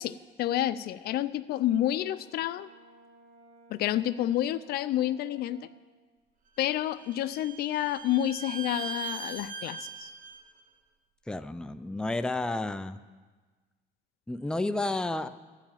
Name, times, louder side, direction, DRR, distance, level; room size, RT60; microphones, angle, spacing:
voice 1, 0.0-2.7 3.7-5.7 6.6-10.1, left 12 dB, 70° left, 16 dB, 0.4 m, -29 dB
Brass instrument, 1.8-5.9, right 2 dB, 75° right, 1.6 m, -57 dB
Bowed string instrument, 6.6-10.4, right 6 dB, 50° right, 1.1 m, -40 dB
voice 2, 11.3-13.0 14.3-15.3, left 2 dB, 5° left, 10 dB, 0.4 m, -31 dB
14.0 x 4.9 x 9.0 m, 1.3 s
cardioid pair, 110°, 17 cm